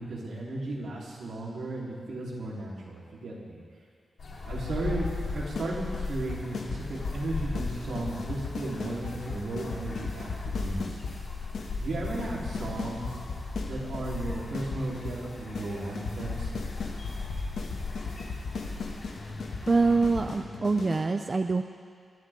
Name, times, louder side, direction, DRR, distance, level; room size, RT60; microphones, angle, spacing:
voice 1, 0.0-3.6 4.4-11.0 11.8-13.2 13.7-16.5, right 2 dB, 80° right, -5 dB, 3.8 m, -35 dB
sound 1, 4.2-20.3, left 3 dB, 55° left, 3.1 m, -37 dB
sound 2, 5.0-5.7 5.9-7.2 7.5-7.7 8.0-11.2 11.5-11.7 11.9-13.7 13.9-15.2 15.5-15.7 16.0-21.0, left 4 dB, 90° left, 2.0 m, -36 dB
voice 2, 19.7-21.6, right 3 dB, 30° right, 6 dB, 0.5 m, -25 dB
23.5 x 14.0 x 3.8 m, 2.1 s
wide cardioid pair, 155°, 0 cm